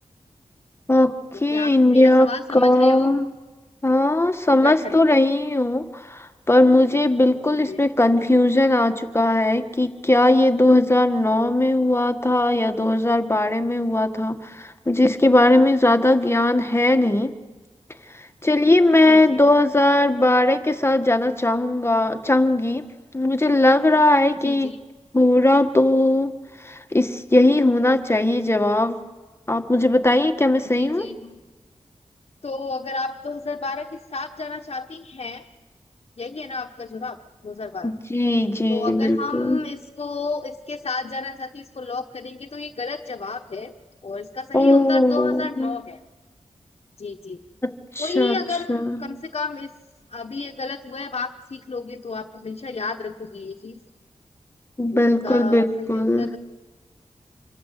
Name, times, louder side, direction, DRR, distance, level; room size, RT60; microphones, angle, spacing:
voice 1, 0.9-3.2 3.8-17.3 18.4-22.8 23.1-24.7 25.1-26.3 26.6-29.0 29.5-31.1 37.8-39.6 44.5-45.8 47.6-48.4 48.7-49.0 54.8-56.3, left 1 dB, 20° left, 8 dB, 1.6 m, -19 dB
voice 2, 1.5-3.1 4.6-5.0 7.7-7.8 19.1-19.4 24.4-24.8 30.6-31.4 32.4-35.4 36.2-37.2 37.4-37.9 38.7-43.7 44.0-46.0 47.0-47.4 48.0-49.7 50.1-53.8 54.9-56.4, left 4 dB, 55° left, 3 dB, 1.2 m, -32 dB
26.5 x 23.5 x 8.4 m, 1.3 s
wide cardioid pair, 85°, 12 cm